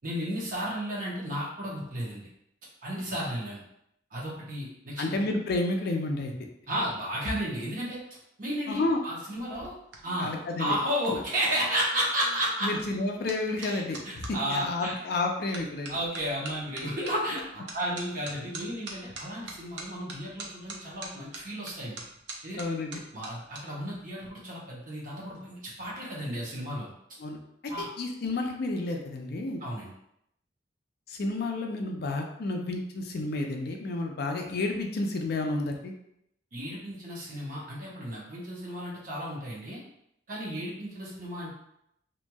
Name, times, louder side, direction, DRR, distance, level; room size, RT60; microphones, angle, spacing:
voice 1, 0.0-2.2 2.8-3.6 4.1-5.2 6.7-8.0 8.4-9.7 10.0-10.3 10.6-12.7 13.6-14.9 15.9-22.0 22.4-22.6 23.1-26.9 27.7-27.9 29.6-29.9 36.5-39.8 40.3-41.5, equal, 45° right, -5 dB, 0.9 m, -33 dB
voice 2, 5.0-6.3 8.7-9.0 10.2-10.7 12.6-16.0 22.6-23.0 27.2-29.6 31.1-35.9, left 2 dB, 55° left, 2 dB, 0.4 m, -31 dB
sound 1, 9.3-14.3 15.0-15.2 15.5-23.6 23.9-24.3, right 3 dB, 65° right, 0.5 m, -44 dB
2.9 x 2.6 x 2.2 m, 0.77 s
head